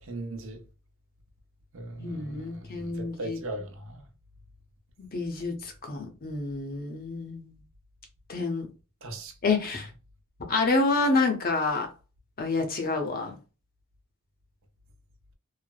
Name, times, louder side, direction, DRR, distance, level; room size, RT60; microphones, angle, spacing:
voice 1, 0.1-0.6 1.7-2.9 3.2-4.0 9.0-9.3, right 1 dB, 65° right, 0.7 m, -38 dB
voice 2, 2.0-3.4 5.0-7.6 8.3-8.7 9.4-9.9 10.5-11.9 12.4-13.4, left 3 dB, 45° left, 0.7 m, -28 dB
3.2 x 2.0 x 2.2 m
head